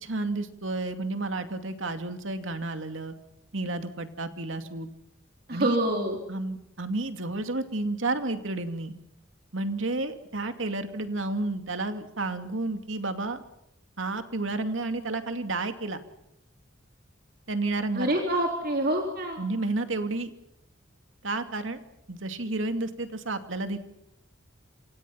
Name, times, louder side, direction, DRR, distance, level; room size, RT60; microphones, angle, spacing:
voice 1, 0.0-3.1 3.5-4.9 5.5-5.8 6.3-8.9 9.5-13.4 14.0-16.0 17.5-18.1 19.4-20.3 21.2-21.8 22.1-23.8, right 2 dB, 80° right, 7 dB, 2.5 m, -31 dB
voice 2, 5.5-6.2 17.9-19.4, right 1 dB, 50° right, 2 dB, 3.5 m, -26 dB
28.0 x 27.5 x 5.8 m, 0.79 s
head